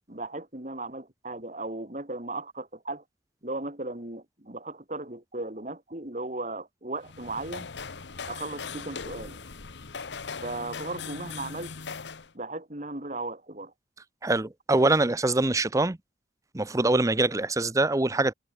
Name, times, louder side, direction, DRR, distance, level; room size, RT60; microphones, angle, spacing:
voice 1, 0.1-3.0 3.4-7.7 8.3-9.4 10.4-11.7 12.3-13.7, right 2 dB, 40° right, 3.0 m, -36 dB
sound 1, 7.0-12.3, left 5 dB, 80° left, 1.1 m, -39 dB
voice 2, 14.2-16.0 16.5-18.3, right 2 dB, 20° right, 0.7 m, -24 dB
head